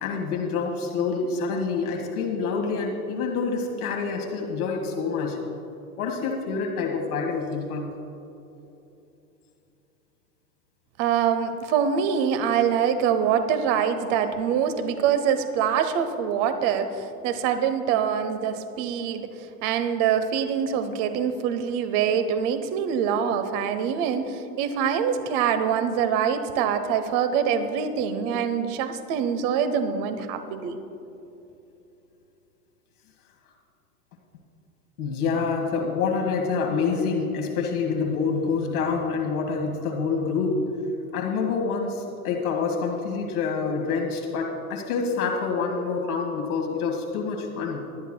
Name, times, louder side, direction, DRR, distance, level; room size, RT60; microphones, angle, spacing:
voice 1, 0.0-5.4 6.0-7.9 35.0-40.6 41.1-47.8, left 5 dB, 75° left, 1 dB, 1.9 m, -27 dB
voice 2, 11.0-19.3 19.6-30.8, right 7 dB, 50° right, 9 dB, 1.1 m, -24 dB
21.5 x 11.0 x 2.3 m, 2.8 s
hypercardioid pair, 105°, 44 cm